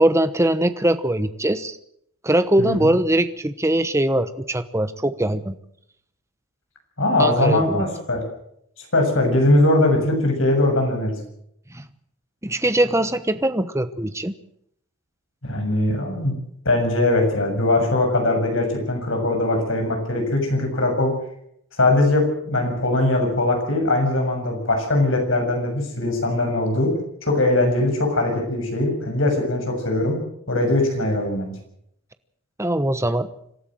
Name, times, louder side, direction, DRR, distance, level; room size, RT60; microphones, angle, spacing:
voice 1, 0.0-1.8 2.2-5.5 7.2-7.8 11.7-11.8 12.4-14.3 32.6-33.3, right 1 dB, 15° right, 11 dB, 1.0 m, -21 dB
voice 2, 2.6-2.9 7.0-8.2 8.9-11.2 15.4-16.3 16.7-21.1 21.8-26.9 27.2-30.2 30.5-31.5, left 2 dB, 65° left, 3 dB, 7.0 m, -21 dB
26.5 x 13.0 x 7.8 m, 0.73 s
head